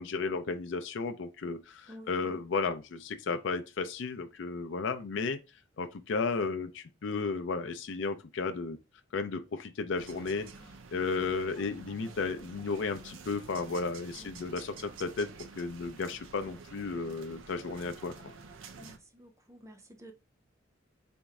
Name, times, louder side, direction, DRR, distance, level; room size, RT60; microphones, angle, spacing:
voice 1, 0.0-5.4 5.8-8.8 9.1-10.5 10.9-15.3 15.6-18.1, left 4 dB, 65° left, 0.4 m, -34 dB
voice 2, 1.9-2.4 10.5-10.7 14.1-14.3 18.8-20.1, equal, 15° right, 0.5 m, -52 dB
sound 1, 10.0-19.0, right 4 dB, 75° right, 0.5 m, -49 dB
4.3 x 2.0 x 3.5 m
head